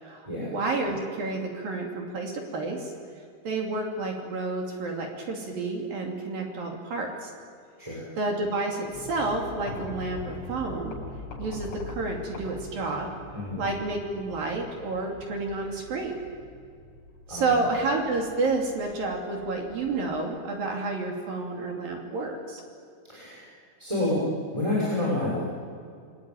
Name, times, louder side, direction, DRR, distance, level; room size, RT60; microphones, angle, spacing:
voice 1, 0.0-2.9 3.4-7.3 8.2-11.0 11.4-13.1 13.6-16.2 17.3-22.6, right 3 dB, 55° right, 1 dB, 4.2 m, -30 dB
sound 1, 8.9-20.2, left 2 dB, 85° left, 8.7 m, -43 dB
voice 2, 13.3-13.7 17.3-17.6 23.0-23.5 23.8-24.3 24.5-25.4, left 2 dB, 5° right, -6 dB, 5.7 m, -28 dB
27.5 x 23.5 x 9.2 m, 2.3 s
omnidirectional pair, 5.3 m